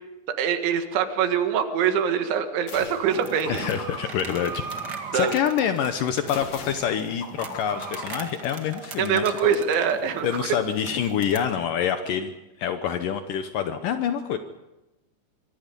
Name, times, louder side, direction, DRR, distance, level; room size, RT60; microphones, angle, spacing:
voice 1, 0.4-3.6 5.1-5.4 9.0-10.3, right 7 dB, 85° right, 7 dB, 4.1 m, -24 dB
sound 1, 2.7-3.1 3.4-5.2 6.3-8.9, left 6 dB, 55° left, 3.4 m, -41 dB
sound 2, 3.0-11.4, right 4 dB, 50° right, 1.2 m, -39 dB
voice 2, 3.5-4.6 5.1-9.5 10.2-12.3 12.6-14.4, left 8 dB, 80° left, 8 dB, 1.9 m, -26 dB
24.5 x 24.0 x 5.3 m, 0.96 s
omnidirectional pair, 5.2 m